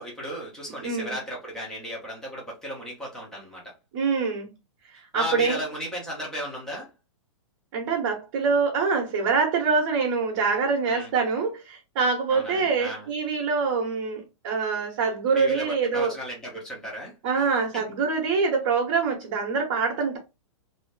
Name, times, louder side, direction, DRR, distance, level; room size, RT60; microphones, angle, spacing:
voice 1, 0.0-3.7 4.9-6.9 10.8-11.1 12.3-13.1 15.4-17.9, equal, 5° left, 0.8 m, -35 dB
voice 2, 0.8-1.2 3.9-4.5 5.1-5.6 7.7-16.1 17.2-20.2, right 5 dB, 35° right, 1.0 m, -25 dB
2.7 x 2.7 x 3.3 m
hypercardioid pair, 175°, 16 cm